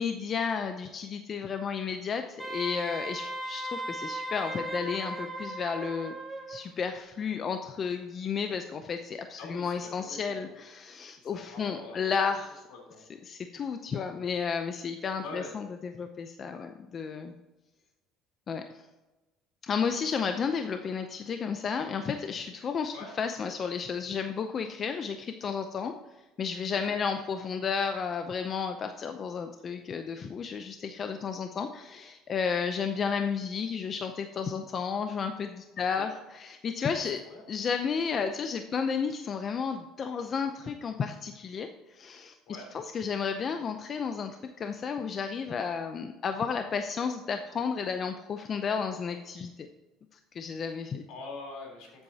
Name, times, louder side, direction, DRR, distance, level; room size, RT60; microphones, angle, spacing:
voice 1, 0.0-6.1 6.5-12.6 13.3-17.3 18.5-18.8 19.6-25.9 26.4-37.2 37.5-41.7 41.9-42.3 42.7-49.7 50.3-51.0, left 6 dB, 35° left, 6 dB, 0.6 m, -32 dB
Wind instrument woodwind instrument, 2.4-6.6, right 1 dB, 10° right, 1.5 m, -37 dB
voice 2, 9.4-10.5 11.2-12.1 12.7-13.1 15.2-15.5 22.9-23.1 26.9-27.0 35.8-36.1 37.2-37.4 42.5-42.7 51.1-52.0, left 2 dB, 75° left, 0 dB, 3.6 m, -44 dB
12.5 x 7.9 x 2.8 m, 1.1 s
cardioid pair, 130°, 0 cm